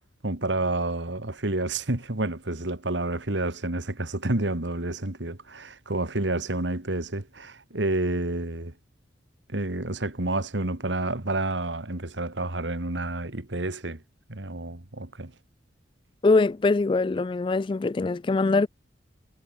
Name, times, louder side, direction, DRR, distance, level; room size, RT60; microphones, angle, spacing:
voice 1, 0.2-8.7 9.5-14.0 14.3-15.3, right 2 dB, 75° right, 2.3 m, -29 dB
voice 2, 16.2-18.7, left 3 dB, 25° left, 0.3 m, -22 dB
head